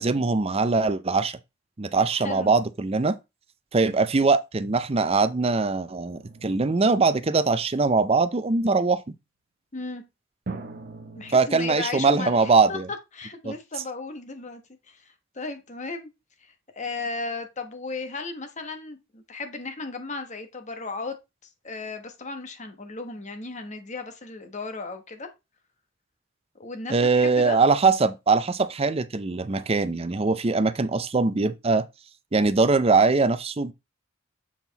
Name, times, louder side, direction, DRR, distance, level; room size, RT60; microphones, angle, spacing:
voice 1, 0.0-1.4 1.8-3.2 3.7-9.0 11.3-12.9 13.4-13.5 26.9-31.8 32.3-33.7, right 4 dB, 30° right, 0.5 m, -22 dB
voice 2, 2.1-2.5 9.7-10.0 11.1-12.8 13.1-14.6 14.9-15.0 15.3-16.1 16.4-21.1 21.6-25.3 26.6-27.6, left 3 dB, 35° left, 1.2 m, -35 dB
sound 1, 6.1-7.9 10.5-11.4, right 3 dB, 50° right, 1.0 m, -41 dB
7.3 x 4.6 x 4.0 m
head